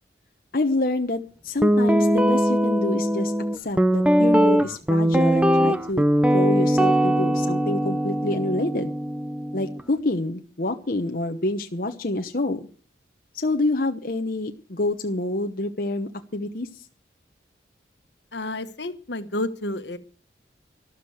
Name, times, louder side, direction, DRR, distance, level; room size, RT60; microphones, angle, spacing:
voice 1, 0.5-6.0 6.3-8.9 9.5-12.7 13.3-16.8, left 2 dB, 50° left, 5 dB, 1.0 m, -27 dB
Guitar, 1.6-9.8, equal, 5° right, 0.6 m, -21 dB
voice 2, 18.3-20.0, left 1 dB, 75° left, 10 dB, 1.4 m, -30 dB
13.0 x 12.5 x 6.5 m, 0.40 s
head